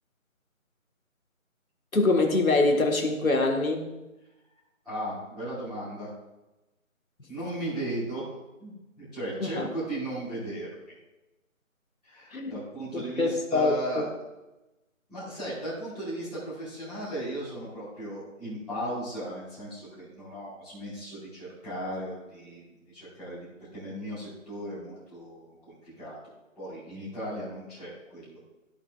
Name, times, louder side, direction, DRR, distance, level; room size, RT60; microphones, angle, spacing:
voice 1, 1.9-3.9 9.4-9.7 12.3-12.5 12.9-13.8, left 2 dB, 90° left, 2 dB, 1.8 m, -24 dB
voice 2, 4.8-6.1 7.3-8.3 8.6-10.7 12.0-14.1 15.1-26.1 26.5-28.5, right 1 dB, ahead, -23 dB, 1.6 m, -36 dB
13.5 x 7.1 x 2.5 m, 1.0 s
figure-of-eight pair, 170°, 40 cm